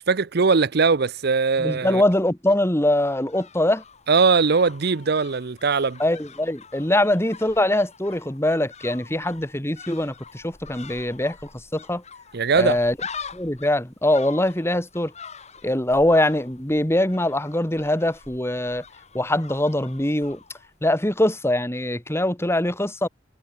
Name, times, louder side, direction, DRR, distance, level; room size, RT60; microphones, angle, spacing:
voice 1, 0.1-2.0 4.1-6.0 12.3-12.8, right 4 dB, 55° right, 0.7 m, -20 dB
voice 2, 1.6-3.8 6.0-11.4 11.7-12.0 12.6-12.9 13.3-15.1 15.6-18.8 19.1-20.4 20.8-23.1, left 1 dB, 15° left, 2.6 m, -22 dB
sound 1, 2.9-21.0 21.3-21.4, left 6 dB, 35° left, 5.9 m, -44 dB
head